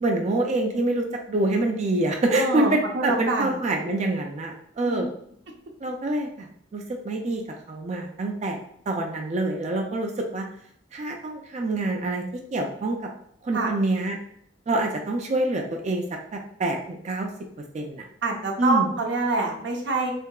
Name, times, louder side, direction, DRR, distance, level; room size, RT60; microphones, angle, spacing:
voice 1, 0.0-5.1 5.8-7.4 7.7-8.6 8.9-10.4 10.9-12.2 12.5-13.0 13.4-14.2 14.7-16.0 16.3-17.3 17.7-18.0 18.6-18.9, right 2 dB, 40° right, 2 dB, 0.4 m, -26 dB
voice 2, 2.4-3.6 4.9-5.0 13.5-13.7 18.2-20.1, right 3 dB, 75° right, 1 dB, 0.7 m, -26 dB
3.4 x 2.7 x 2.3 m, 0.67 s
head